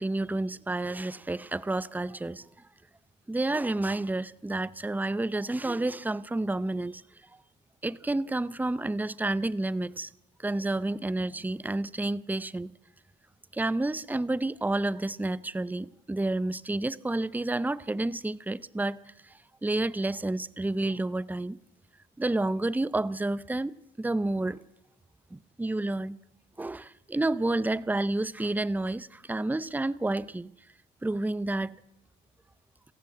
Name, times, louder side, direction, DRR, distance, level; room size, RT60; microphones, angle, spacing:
voice 1, 0.0-2.5 3.3-7.0 7.8-10.1 10.4-12.7 13.5-19.0 19.2-21.6 22.2-24.6 25.3-26.2 26.6-30.5 31.0-31.7, right 2 dB, 10° right, 0.7 m, -30 dB
28.0 x 14.5 x 7.9 m
cardioid pair, 90°, 20 cm